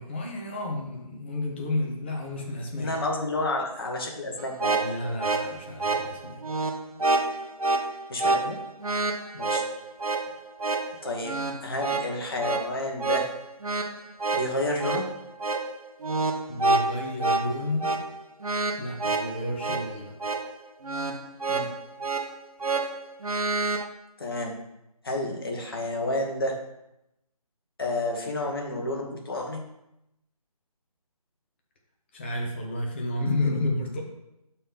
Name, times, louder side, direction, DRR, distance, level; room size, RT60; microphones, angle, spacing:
voice 1, 0.0-2.9 4.8-6.4 16.5-17.9 18.8-20.1 32.1-34.0, left 2 dB, 20° left, 0 dB, 0.9 m, -31 dB
voice 2, 2.8-4.8 8.1-8.6 9.3-9.6 11.0-13.3 14.3-15.0 21.5-21.7 24.2-24.5 25.0-26.6 27.8-29.6, left 2 dB, 40° left, 1 dB, 1.3 m, -30 dB
sound 1, 4.4-23.8, right 3 dB, 70° right, 0.8 m, -28 dB
5.5 x 4.2 x 5.5 m, 0.86 s
figure-of-eight pair, 155°, 19 cm